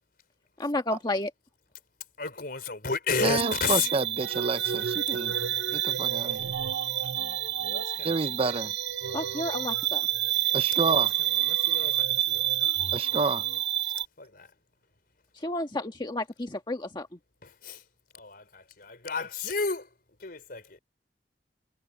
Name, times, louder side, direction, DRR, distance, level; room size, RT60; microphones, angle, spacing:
voice 1, 0.6-1.3 9.1-10.1 15.4-17.1, left 2 dB, 25° left, 1.5 m, -31 dB
voice 2, 2.2-3.9 4.6-4.7 7.6-8.4 10.9-12.6 14.2-14.5 17.4-17.8 18.1-19.9 20.2-20.8, left 5 dB, 60° left, 4.5 m, -33 dB
voice 3, 3.2-5.3 5.7-6.5 8.0-8.7 10.5-11.1 12.9-13.4, right 3 dB, 35° right, 0.6 m, -29 dB
sound 1, 3.4-14.0, right 11 dB, 75° right, 0.7 m, -28 dB
head